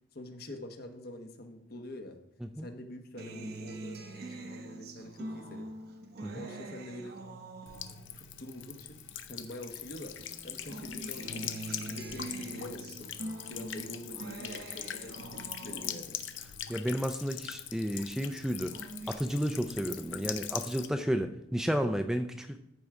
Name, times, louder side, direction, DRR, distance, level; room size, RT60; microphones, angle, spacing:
voice 1, 0.1-2.2 2.6-5.7 6.3-7.2 8.1-10.1 10.4-13.1 13.5-16.2, left 1 dB, 55° left, 5 dB, 1.1 m, -45 dB
Acoustic guitar, 3.2-9.8 10.2-17.8 18.2-19.2, right 2 dB, 55° right, 0.9 m, -45 dB
Buzz / Water tap faucet / Trickle dribble, 7.7-20.9, left 10 dB, 80° left, 0.6 m, -42 dB
voice 2, 16.7-18.7 19.1-22.6, equal, 5° right, 7 dB, 0.4 m, -32 dB
14.0 x 4.7 x 3.7 m, 0.79 s
head